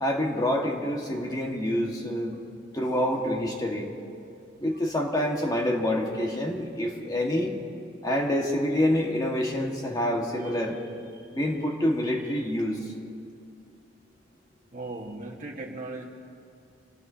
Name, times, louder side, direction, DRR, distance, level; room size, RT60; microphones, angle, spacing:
voice 1, 0.0-2.4 2.7-3.9 4.6-7.5 8.0-10.8 11.3-12.8, left 1 dB, 20° left, -1 dB, 1.7 m, -27 dB
voice 2, 14.7-16.1, right 2 dB, 45° right, 0 dB, 1.6 m, -38 dB
26.5 x 18.0 x 2.8 m, 2.4 s
head